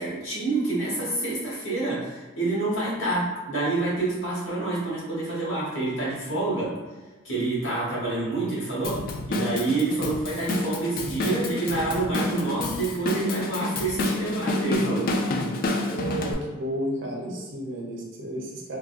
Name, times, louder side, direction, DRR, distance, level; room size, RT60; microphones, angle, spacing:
voice 1, 0.0-6.7 7.2-15.2, right 2 dB, 65° left, -6 dB, 1.3 m, -27 dB
Drum kit / Drum, 8.8-16.3, left 2 dB, 45° left, 0.3 m, -29 dB
voice 2, 15.9-18.8, equal, 65° right, -1 dB, 0.7 m, -32 dB
3.6 x 2.2 x 2.5 m, 1.2 s
head